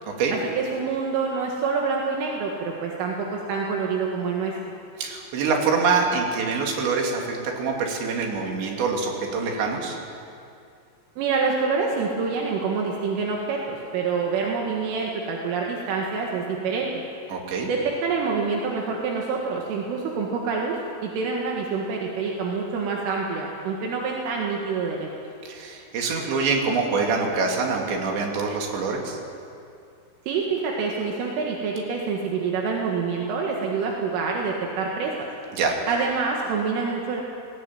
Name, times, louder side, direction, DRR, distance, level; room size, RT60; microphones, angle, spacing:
voice 1, 0.3-4.5 11.2-16.9 17.7-25.1 30.3-35.3 35.9-37.2, right 5 dB, 80° right, -1 dB, 4.3 m, -26 dB
voice 2, 5.0-10.0 17.3-17.7 25.5-29.2 35.5-35.8, right 4 dB, 65° right, 0 dB, 4.8 m, -25 dB
19.5 x 19.0 x 9.3 m, 2.5 s
omnidirectional pair, 5.8 m